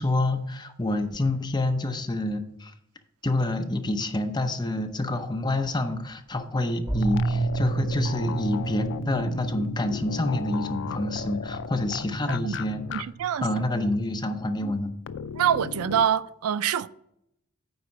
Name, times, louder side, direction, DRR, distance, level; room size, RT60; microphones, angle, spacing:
voice 1, 0.0-2.7 3.2-13.0 13.4-14.9, left 2 dB, 20° left, 0.7 m, -27 dB
sound 1, 6.9-14.9, right 3 dB, 20° right, 2.6 m, -32 dB
sound 2, 7.0-13.0 13.3-13.4 15.1-16.1, left 7 dB, 60° left, 0.4 m, -36 dB
voice 2, 12.9-13.5 15.3-16.9, right 9 dB, 80° right, 0.4 m, -25 dB
9.5 x 4.2 x 5.8 m
head